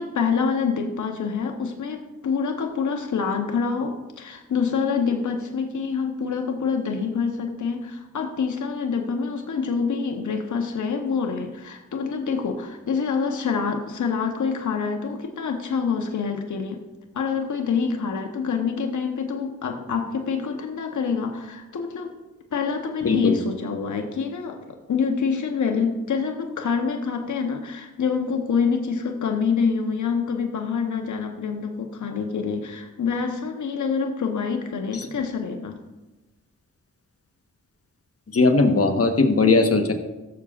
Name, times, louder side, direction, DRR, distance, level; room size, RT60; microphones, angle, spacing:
voice 1, 0.0-16.8 17.1-22.1 22.5-35.8, left 5 dB, 65° left, 4 dB, 1.1 m, -26 dB
voice 2, 23.0-23.4 38.3-39.9, left 3 dB, 45° left, 5 dB, 1.4 m, -18 dB
16.0 x 7.1 x 2.5 m, 1.1 s
cardioid pair, 55°, 32 cm